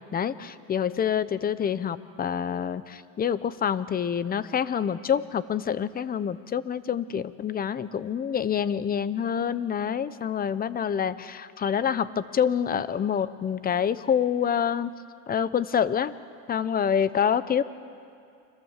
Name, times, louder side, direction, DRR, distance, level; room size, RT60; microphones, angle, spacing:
voice 1, 0.1-14.9 15.3-16.1 16.5-17.6, left 8 dB, 25° left, 15 dB, 0.9 m, -27 dB
29.5 x 25.0 x 7.4 m, 2.4 s
cardioid pair, 125°, 33 cm